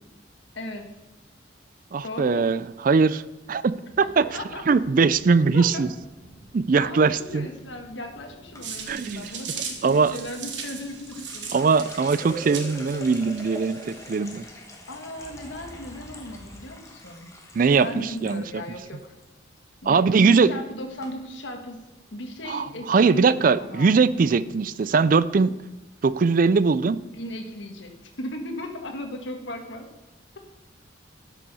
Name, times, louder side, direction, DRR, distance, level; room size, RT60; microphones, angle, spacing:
voice 1, 0.5-0.9 2.0-2.5 4.3-4.6 5.5-5.8 6.8-11.5 14.9-17.3 17.8-19.1 19.8-21.8 22.1-23.9 27.1-29.9, left 1 dB, 80° left, 4 dB, 1.4 m, -36 dB
voice 2, 1.9-3.2 3.5-3.7 4.2-4.3 4.7-5.9 6.5-7.5 8.9-9.3 9.8-10.1 11.5-14.4 17.5-18.6 19.9-20.5 22.5-25.5 26.0-27.0, right 4 dB, 45° right, 16 dB, 0.4 m, -21 dB
sound 1, 3.9-14.5 15.1-16.7, right 1 dB, 20° right, 4.1 m, -51 dB
sound 2, 8.5-8.9 10.4-18.4 18.6-19.2 19.6-19.9 20.6-20.7 21.0-21.1, equal, 15° left, 1.3 m, -43 dB
sound 3, 8.6-14.1, right 6 dB, 70° right, 1.5 m, -38 dB
12.5 x 6.1 x 5.5 m, 1.0 s
head